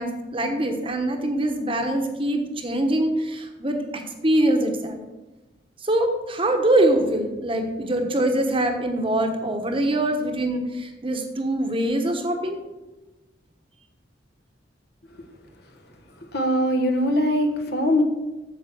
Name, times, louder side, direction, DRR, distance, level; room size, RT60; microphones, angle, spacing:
voice 1, 0.0-5.0 5.8-12.6, right 1 dB, 30° right, 4 dB, 1.1 m, -23 dB
voice 2, 16.3-18.0, equal, 60° left, 4 dB, 1.3 m, -21 dB
8.4 x 7.5 x 6.1 m, 1.1 s
head